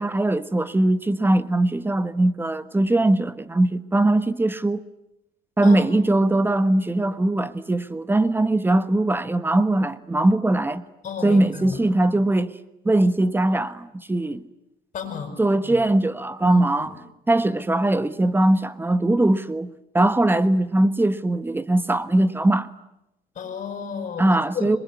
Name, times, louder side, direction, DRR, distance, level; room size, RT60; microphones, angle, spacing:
voice 1, 0.0-4.8 5.6-10.8 11.2-12.5 12.8-14.4 15.4-16.9 17.3-22.7 24.2-24.8, right 1 dB, 10° right, 1.3 m, -21 dB
voice 2, 11.0-11.8 14.9-15.3 15.7-15.8 16.4-16.9 23.4-24.3 24.5-24.7, left 6 dB, 45° left, 7.5 m, -32 dB
26.5 x 22.5 x 9.6 m
cardioid pair, 110°, 17 cm